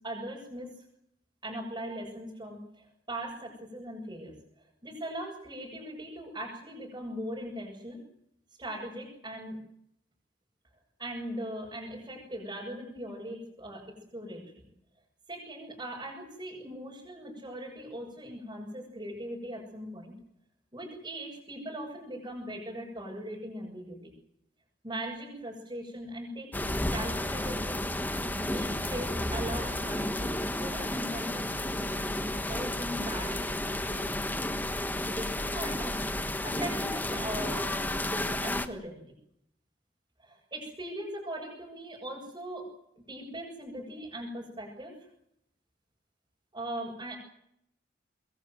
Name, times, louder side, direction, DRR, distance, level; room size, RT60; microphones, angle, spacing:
voice 1, 0.0-0.7 1.4-4.3 4.8-8.0 8.6-9.6 11.0-14.7 15.3-20.1 20.7-24.1 24.8-27.8 28.4-34.6 35.1-39.0 40.2-42.7 43.0-44.9 46.5-47.2, right 1 dB, 20° right, -4 dB, 7.4 m, -40 dB
sound 1, 26.5-38.7, left 1 dB, 10° left, 1.3 m, -32 dB
25.5 x 22.5 x 7.9 m, 0.76 s
head